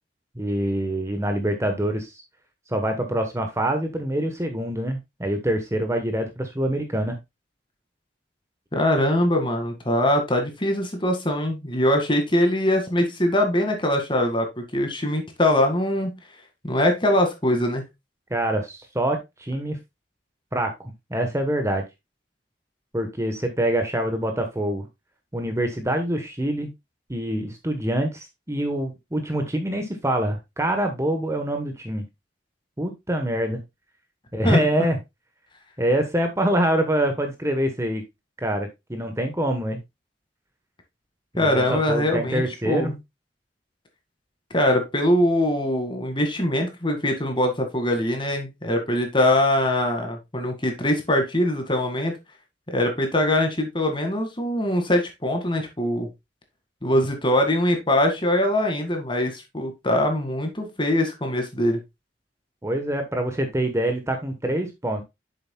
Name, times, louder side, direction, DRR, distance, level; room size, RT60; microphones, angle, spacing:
voice 1, 0.4-2.2 2.7-7.2 18.3-19.8 20.5-20.7 21.1-21.8 22.9-24.9 25.3-26.7 27.1-32.0 32.8-33.6 34.3-35.0 35.8-38.0 38.4-39.8 41.3-43.0 62.6-65.0, right 1 dB, 15° right, 5 dB, 1.1 m, -25 dB
voice 2, 8.7-16.1 16.6-17.8 34.4-34.6 41.4-42.9 44.5-52.1 52.7-56.1 56.8-61.8, left 1 dB, 30° left, 5 dB, 2.0 m, -22 dB
8.8 x 7.1 x 2.3 m, 0.21 s
head